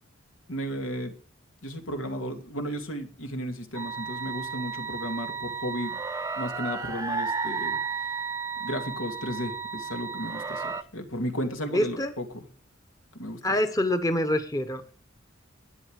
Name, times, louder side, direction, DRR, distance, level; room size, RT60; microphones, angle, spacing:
voice 1, 0.5-1.1 1.6-6.0 6.4-7.8 8.6-12.4 13.1-13.6, equal, 85° left, 6 dB, 2.6 m, -34 dB
sound 1, 3.7-10.8, right 5 dB, 15° right, 0.8 m, -33 dB
voice 2, 11.7-12.1 13.4-14.9, left 1 dB, 15° left, 8 dB, 1.1 m, -26 dB
12.5 x 10.0 x 6.5 m, 0.39 s
head